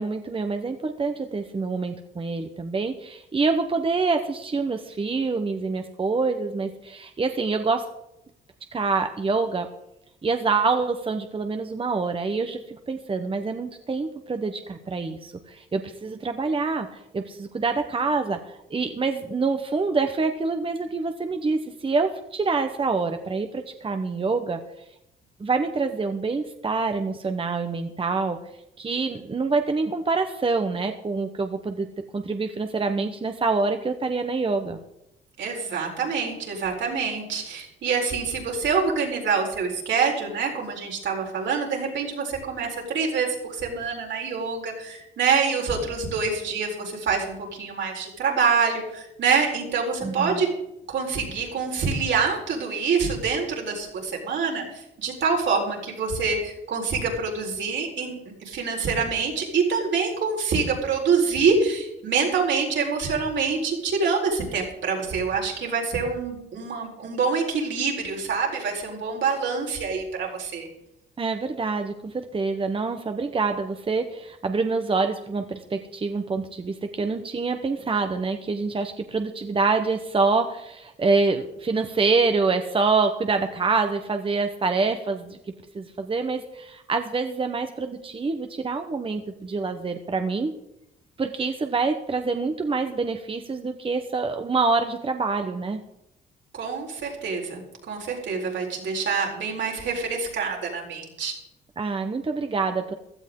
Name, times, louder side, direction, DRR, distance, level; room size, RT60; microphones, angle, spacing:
voice 1, 0.0-7.9 8.7-9.7 10.2-24.6 25.4-28.4 28.8-31.9 32.1-34.8 50.0-50.4 71.2-85.4 85.7-90.5 91.2-95.8 101.8-102.9, right 4 dB, 25° right, 7 dB, 1.0 m, -26 dB
voice 2, 35.4-50.5 50.9-58.1 58.4-70.7 96.6-101.3, right 5 dB, 70° right, 0 dB, 4.5 m, -26 dB
16.0 x 12.5 x 3.8 m, 0.84 s
cardioid pair, 90°, 20 cm